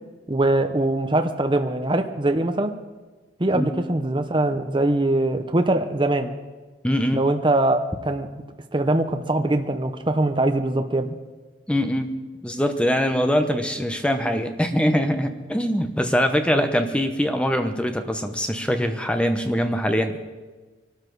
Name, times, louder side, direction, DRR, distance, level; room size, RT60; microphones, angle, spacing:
voice 1, 0.3-2.7 3.4-6.3 7.1-8.3 8.7-11.2 16.5-16.6, right 2 dB, 25° right, 6 dB, 0.8 m, -22 dB
voice 2, 6.8-7.2 11.7-12.1 12.4-20.2, equal, 5° left, 6 dB, 0.9 m, -23 dB
23.0 x 13.0 x 4.7 m, 1.3 s
head